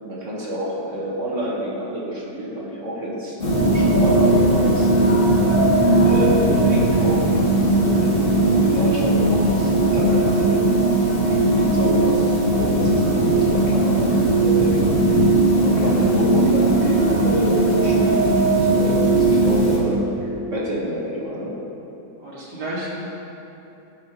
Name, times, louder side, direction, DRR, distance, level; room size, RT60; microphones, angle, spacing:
voice 1, 0.0-5.4 6.0-10.7 11.2-15.2 15.5-21.6, equal, 50° right, -4 dB, 1.9 m, -28 dB
sound 1, 3.4-19.8, right 2 dB, 35° left, 2.0 m, -18 dB
voice 2, 22.2-22.9, right 1 dB, 80° right, -6 dB, 2.9 m, -31 dB
12.0 x 11.5 x 3.1 m, 2.9 s
omnidirectional pair, 1.8 m